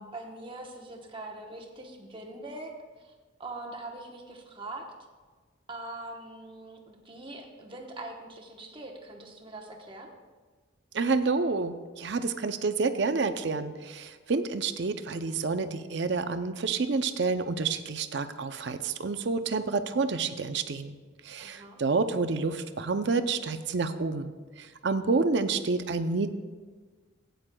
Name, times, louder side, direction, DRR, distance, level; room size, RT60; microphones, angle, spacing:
voice 1, 0.0-2.7 3.0-3.1 3.4-4.9 5.7-10.1 21.4-21.8, right 2 dB, 25° right, 1 dB, 1.0 m, -42 dB
voice 2, 10.9-21.0 21.3-24.3 24.8-26.3, right 4 dB, 60° right, 10 dB, 0.5 m, -29 dB
16.5 x 9.2 x 2.3 m, 1.4 s
head